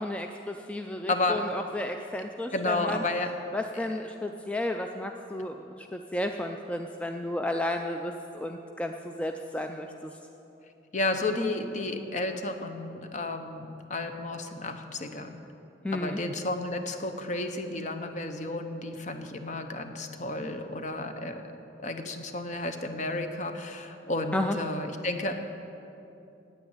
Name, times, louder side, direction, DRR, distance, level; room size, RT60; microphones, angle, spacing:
voice 1, 0.0-3.0 3.5-10.1 15.8-16.2 24.3-24.6, left 1 dB, 5° left, 4 dB, 0.3 m, -33 dB
voice 2, 1.1-1.5 2.5-3.3 10.9-15.4 15.9-21.4 21.8-25.4, left 2 dB, 40° left, 7 dB, 0.8 m, -32 dB
9.0 x 9.0 x 8.9 m, 2.8 s
head